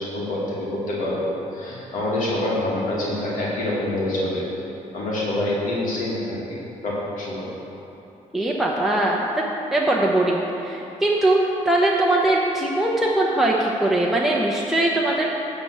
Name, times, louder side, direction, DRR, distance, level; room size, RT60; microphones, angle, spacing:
voice 1, 0.0-4.5 4.9-7.5, left 1 dB, 75° left, -6 dB, 1.8 m, -26 dB
voice 2, 8.3-9.3 9.7-15.3, right 1 dB, ahead, -3 dB, 0.8 m, -21 dB
10.5 x 3.5 x 6.8 m, 3.0 s
cardioid pair, 80°, 14 cm